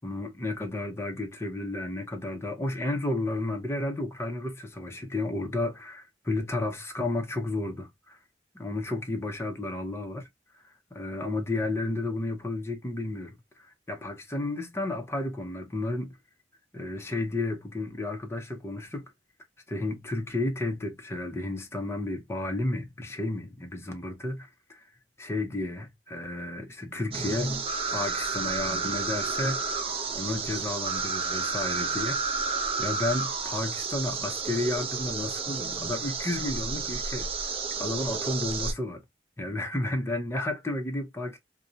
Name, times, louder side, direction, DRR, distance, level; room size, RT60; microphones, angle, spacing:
voice 1, 0.0-8.2 8.5-10.3 10.5-10.6 10.9-16.1 16.7-19.0 19.7-24.8 25.2-29.6 30.1-32.2 32.8-39.0 39.4-41.4, left 2 dB, 15° left, 0.6 m, -32 dB
sound 1, 27.1-38.7, right 4 dB, 30° right, 0.5 m, -31 dB
2.5 x 2.1 x 2.6 m
head